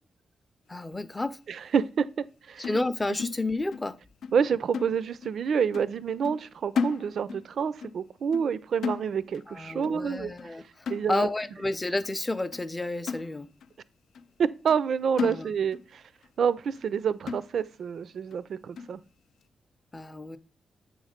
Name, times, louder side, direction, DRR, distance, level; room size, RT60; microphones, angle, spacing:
voice 1, 0.7-1.4 2.6-4.0 9.5-13.5 15.2-15.5 19.9-20.4, left 2 dB, 20° left, 0.5 m, -31 dB
voice 2, 1.5-2.8 4.3-10.3 10.9-11.3 14.4-16.0 16.4-19.0, right 7 dB, 70° right, 0.4 m, -28 dB
sound 1, 2.6-3.9 4.2-4.4 4.7-5.4 5.7-6.0 6.2-7.5 7.8-8.0 8.3-9.5 9.8-10.1 10.4-10.6 10.9-11.5 12.0-12.1 12.5-12.7 13.1-13.7 14.1-14.3 14.7-14.9 15.2-15.9 16.2-16.3 16.7-16.9 17.3-17.8 18.3-18.4 18.8-19.0, left 5 dB, 85° left, 0.4 m, -35 dB
7.9 x 3.2 x 5.0 m
cardioid pair, 100°, 0 cm